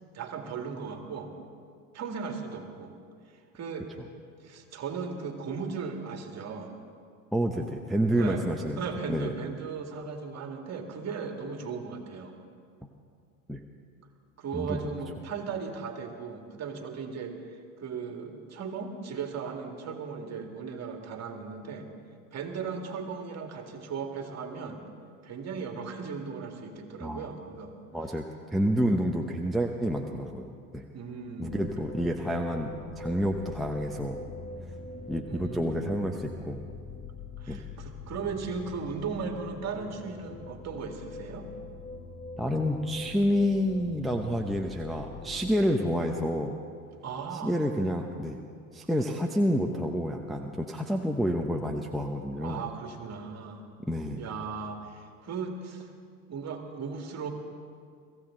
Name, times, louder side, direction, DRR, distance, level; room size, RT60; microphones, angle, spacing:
voice 1, 0.1-1.3 1.9-2.9 3.5-3.9 4.4-6.7 8.2-8.4 8.8-12.4 14.4-17.4 17.8-21.9 22.3-24.8 25.2-27.7 30.9-31.5 35.3-35.8 37.4-41.5 47.0-47.6 52.4-53.7 54.2-55.9 56.3-57.3, right 5 dB, 35° right, 3 dB, 2.3 m, -37 dB
voice 2, 7.3-8.8 9.1-9.3 13.5-13.6 14.5-14.8 27.0-27.2 27.9-28.2 28.5-30.9 31.4-32.7 33.0-34.2 35.1-36.6 37.5-37.6 42.4-46.6 47.4-48.4 48.7-52.6 53.8-54.2, equal, ahead, 1 dB, 0.8 m, -29 dB
sound 1, 31.5-45.6, left 3 dB, 15° left, 1.3 m, -43 dB
23.0 x 15.5 x 3.9 m, 2.2 s
hypercardioid pair, 90°, 46 cm